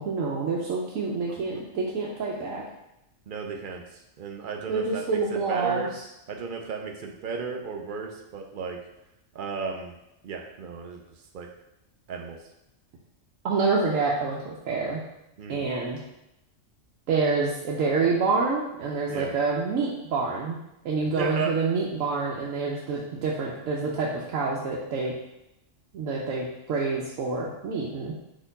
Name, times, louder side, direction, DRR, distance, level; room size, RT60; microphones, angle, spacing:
voice 1, 0.0-2.6 4.7-5.9 13.4-15.0 15.5-16.0 17.1-20.6 20.8-25.1 25.9-28.1, right 4 dB, 90° right, -4 dB, 1.1 m, -27 dB
voice 2, 3.3-5.9 6.3-8.8 9.3-9.9 10.2-11.0 11.3-11.5 12.1-12.4 15.4-15.6 19.1-19.3 21.1-21.5, right 5 dB, 60° right, 2 dB, 0.6 m, -34 dB
4.2 x 3.1 x 3.9 m, 0.87 s
omnidirectional pair, 1.3 m